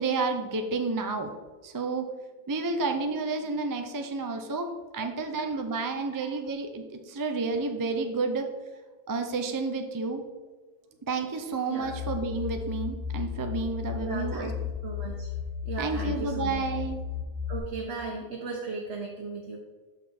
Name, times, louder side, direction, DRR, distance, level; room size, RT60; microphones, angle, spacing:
voice 1, 0.0-1.3 1.6-2.1 2.5-4.7 4.9-8.4 9.1-10.2 11.1-14.5 15.8-17.0, right 4 dB, 35° right, 5 dB, 0.3 m, -30 dB
sound 1, 11.8-17.6, left 7 dB, 35° left, 1.3 m, -34 dB
voice 2, 14.0-14.5 14.8-15.3 15.6-16.6 17.5-19.6, right 4 dB, 70° right, -1 dB, 1.2 m, -36 dB
6.4 x 5.7 x 4.3 m, 1.3 s
omnidirectional pair, 1.2 m